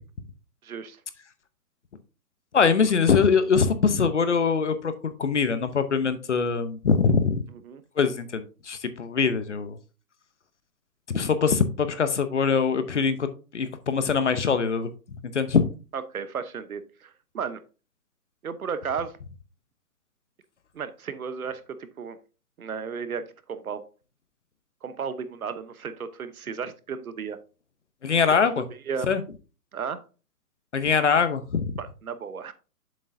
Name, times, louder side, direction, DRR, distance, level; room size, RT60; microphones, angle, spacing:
voice 1, 0.6-1.0 7.6-7.8 15.9-17.6 18.4-19.2 20.7-22.2 22.6-23.8 24.8-27.4 28.9-29.1 29.7-30.0 31.8-32.5, right 6 dB, 65° right, 1.0 m, -34 dB
voice 2, 2.5-7.4 8.0-9.8 11.1-13.3 13.5-14.9 15.3-15.6 28.0-28.7 29.0-29.2 30.7-31.7, left 5 dB, 50° left, 0.8 m, -23 dB
7.6 x 6.4 x 2.6 m
hypercardioid pair, 180°, 47 cm